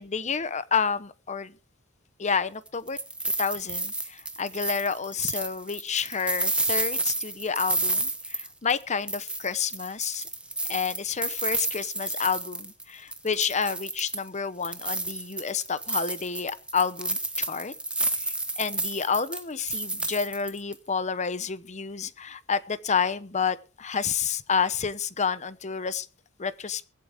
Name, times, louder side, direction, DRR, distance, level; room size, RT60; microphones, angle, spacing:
voice 1, 0.0-1.5 2.2-3.0 3.4-10.2 10.7-17.7 18.2-26.1 26.4-26.8, left 6 dB, 30° left, 0.8 m, -29 dB
sound 1, 2.7-8.8 9.1-12.8 13.1-14.3 14.6-20.7, right 2 dB, 5° right, 1.2 m, -30 dB
23.0 x 8.5 x 3.5 m
head